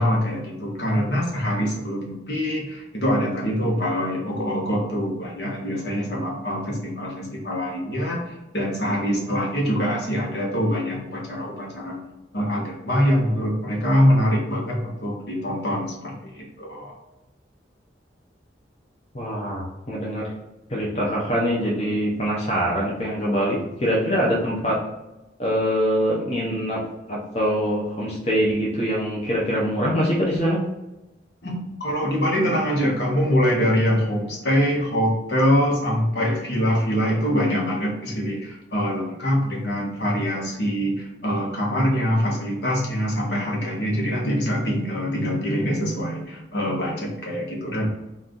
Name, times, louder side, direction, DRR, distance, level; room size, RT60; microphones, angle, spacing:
voice 1, 0.0-8.2 8.5-12.0 12.3-16.9 31.4-47.9, equal, 65° left, -2 dB, 1.2 m, -24 dB
voice 2, 19.1-20.3 20.7-24.8 25.4-26.8 27.1-30.6, equal, 35° left, -5 dB, 0.8 m, -24 dB
4.2 x 2.5 x 3.8 m, 0.99 s
head